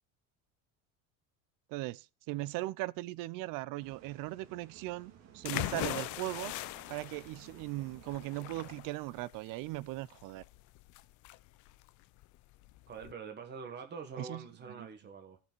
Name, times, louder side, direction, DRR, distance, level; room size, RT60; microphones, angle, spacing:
voice 1, 1.7-6.5 6.9-10.4 14.2-14.4 14.8-14.9, right 18 dB, 65° right, 0.6 m, -38 dB
sound 1, 3.8-8.8, right 8 dB, 50° right, 1.8 m, -58 dB
sound 2, 5.4-13.1, left 18 dB, 55° left, 0.6 m, -41 dB
voice 2, 12.9-15.4, right 5 dB, 30° right, 1.5 m, -45 dB
17.0 x 6.1 x 4.5 m
cardioid pair, 135°, 35 cm